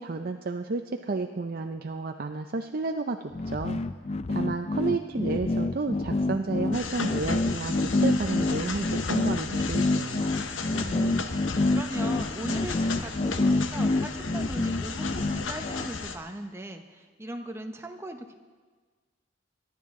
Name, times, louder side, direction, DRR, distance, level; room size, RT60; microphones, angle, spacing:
voice 1, 0.0-3.2 3.5-3.8 4.3-10.3, right 3 dB, 50° right, 5 dB, 0.5 m, -31 dB
sound 1, 3.3-15.9, left 2 dB, 35° left, 0.4 m, -27 dB
sound 2, 6.7-16.2, left 4 dB, 85° left, 0.9 m, -36 dB
voice 2, 10.7-18.3, right 1 dB, 15° right, 5 dB, 0.8 m, -39 dB
24.0 x 10.5 x 3.7 m, 1.5 s
head